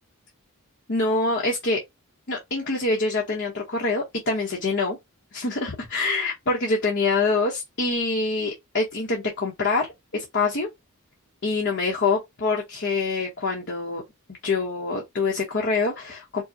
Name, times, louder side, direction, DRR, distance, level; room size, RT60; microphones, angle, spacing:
voice 1, 0.9-1.8 2.3-5.0 5.3-9.9 10.1-10.7 11.4-14.0 14.4-16.4, left 3 dB, 55° left, 1.0 m, -25 dB
4.7 x 2.2 x 2.8 m
head